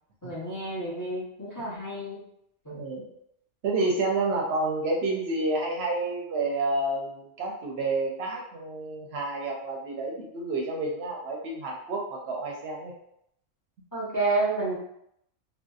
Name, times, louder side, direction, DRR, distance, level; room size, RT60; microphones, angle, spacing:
voice 1, 0.2-2.2 2.6-2.8 13.9-14.8, right 2 dB, 25° left, -7 dB, 0.4 m, -30 dB
voice 2, 2.7-3.1 3.6-12.9, right 2 dB, 65° right, -1 dB, 0.7 m, -29 dB
2.7 x 2.0 x 2.3 m, 0.74 s
omnidirectional pair, 1.2 m